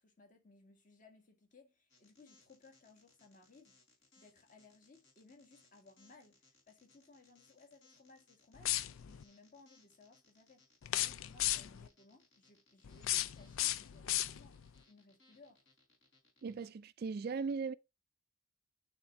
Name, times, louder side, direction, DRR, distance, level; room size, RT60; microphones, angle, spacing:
voice 1, 0.0-3.8 4.2-14.6 14.8-15.6, left 3 dB, 40° left, 1.7 m, -62 dB
sound 1, 1.9-16.7, left 3 dB, 60° left, 3.7 m, -69 dB
sound 2, 8.5-9.2 10.8-11.9 12.8-14.7, left 14 dB, 75° left, 0.4 m, -36 dB
voice 2, 16.4-17.7, right 5 dB, 50° right, 0.3 m, -38 dB
9.6 x 3.5 x 4.1 m
head